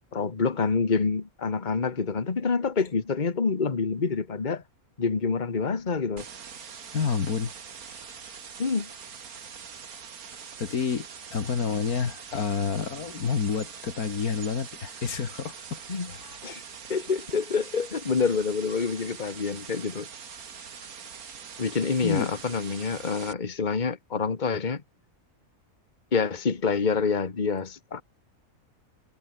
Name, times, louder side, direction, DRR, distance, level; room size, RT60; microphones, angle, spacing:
voice 1, 0.1-4.6 5.0-6.2 8.6-8.9 15.9-16.1 16.4-16.6 16.9-20.1 21.6-24.8 26.1-28.0, left 5 dB, 30° left, 1.6 m, -27 dB
sound 1, 6.2-23.3, right 6 dB, 80° right, 2.1 m, -43 dB
voice 2, 6.9-7.5 10.6-15.8 16.1-16.4 22.0-22.3, left 6 dB, 85° left, 2.3 m, -29 dB
omnidirectional pair, 1.5 m